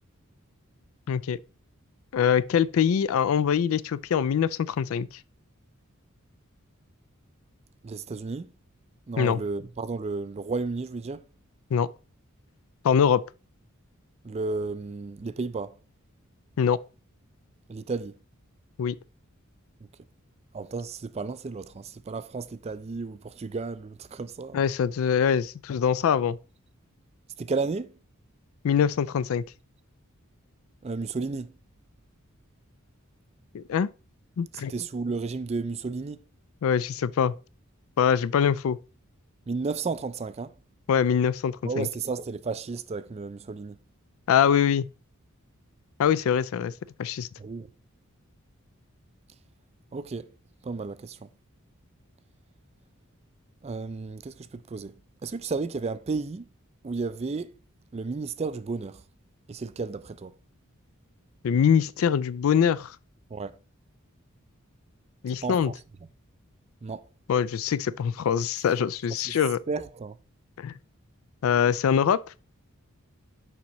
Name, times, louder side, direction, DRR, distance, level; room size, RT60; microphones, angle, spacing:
voice 1, 1.1-1.4 2.1-5.1 9.2-9.4 11.7-11.9 12.8-13.2 16.6-16.8 18.8-19.0 24.5-26.4 28.6-29.4 33.5-33.9 34.4-34.7 36.6-37.3 38.0-38.8 40.9-41.9 44.3-44.9 46.0-46.7 47.0-47.3 61.4-63.0 65.2-65.7 67.3-69.6 70.6-70.7 71.4-72.2, left 7 dB, 70° left, 0.3 m, -23 dB
voice 2, 7.8-8.5 9.1-11.2 14.2-15.7 17.7-18.2 20.5-24.6 27.4-28.0 30.8-31.5 34.7-36.2 39.5-40.5 41.6-43.8 47.4-47.7 49.9-50.3 50.6-51.3 53.6-54.9 55.2-56.5 56.8-57.5 57.9-59.0 59.5-60.3 63.3-63.6 65.3-65.7 66.8-67.1 69.2-69.4 69.7-70.2, right 4 dB, 30° right, 0.3 m, -33 dB
7.1 x 5.3 x 3.0 m
head